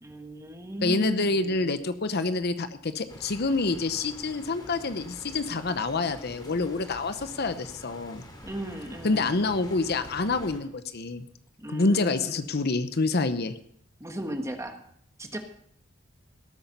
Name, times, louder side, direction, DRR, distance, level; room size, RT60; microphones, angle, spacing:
voice 1, 0.0-1.7 8.4-9.3 11.6-12.4 14.0-14.8 15.2-15.4, right 1 dB, 15° right, 5 dB, 1.5 m, -36 dB
voice 2, 0.8-8.2 9.0-11.3 11.7-13.6, left 3 dB, 55° left, 11 dB, 0.8 m, -27 dB
sound 1, 3.1-10.6, left 1 dB, 20° left, 2.5 m, -46 dB
18.0 x 8.6 x 5.4 m, 0.66 s
head